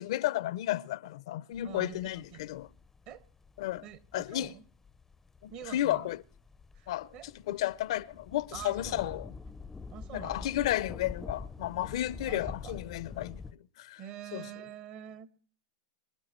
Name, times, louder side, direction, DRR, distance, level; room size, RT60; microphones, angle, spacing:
voice 1, 0.0-2.7 3.6-3.9 4.1-4.5 5.4-6.2 6.9-7.1 7.5-9.3 10.1-13.4 13.8-14.0 14.3-14.5, left 14 dB, 65° left, 0.5 m, -32 dB
sound 1, 1.5-13.5, left 4 dB, 10° left, 0.5 m, -46 dB
voice 2, 1.6-2.4 3.1-3.2 3.8-4.6 5.5-6.2 6.7-7.3 8.5-9.1 9.9-10.6 12.3-12.8 14.0-15.3, right 10 dB, 50° right, 1.5 m, -46 dB
25.5 x 12.0 x 3.0 m
hypercardioid pair, 115°, 3 cm